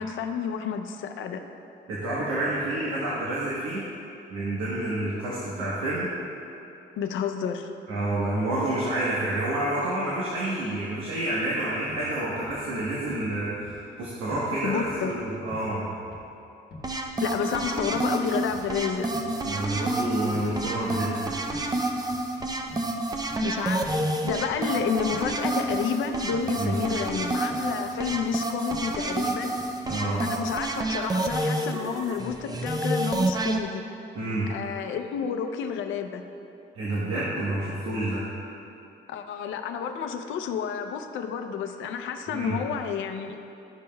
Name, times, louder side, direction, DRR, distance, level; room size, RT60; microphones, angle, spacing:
voice 1, 0.0-1.4 7.0-7.7 14.6-15.1 17.2-19.1 23.4-23.9 24.2-29.5 30.2-33.8 34.5-36.2 39.1-43.4, left 7 dB, 80° left, 7 dB, 0.6 m, -30 dB
voice 2, 1.9-3.9 4.3-6.1 7.9-15.9 19.4-21.4 26.6-26.8 29.8-30.3 34.1-34.5 36.7-38.2 42.3-42.6, right 1 dB, 90° right, -7 dB, 1.2 m, -29 dB
sound 1, 11.9-14.0 14.3-16.4 16.7-18.8 19.1-21.2 21.5-23.5 23.9-26.0 26.3-28.4 28.7-30.8, equal, 55° left, 1.1 m, -47 dB
sound 2, 16.8-33.6, right 2 dB, 20° right, 0.5 m, -29 dB
12.5 x 5.3 x 2.2 m, 2.8 s
cardioid pair, 90°, 20 cm